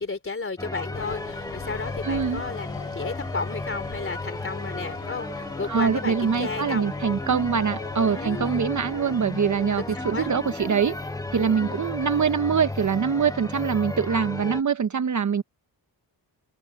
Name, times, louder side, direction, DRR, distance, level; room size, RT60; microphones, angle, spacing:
voice 1, 0.0-6.9 8.1-8.6 9.9-10.3 11.6-11.8, left 4 dB, 30° left, 3.3 m, -33 dB
sound 1, 0.6-14.6, left 2 dB, 10° left, 1.1 m, -34 dB
sound 2, 0.9-14.3, left 10 dB, 85° left, 4.8 m, -43 dB
voice 2, 2.0-2.4 5.7-11.0 11.3-15.4, right 6 dB, 40° right, 0.9 m, -24 dB
cardioid pair, 100°, 43 cm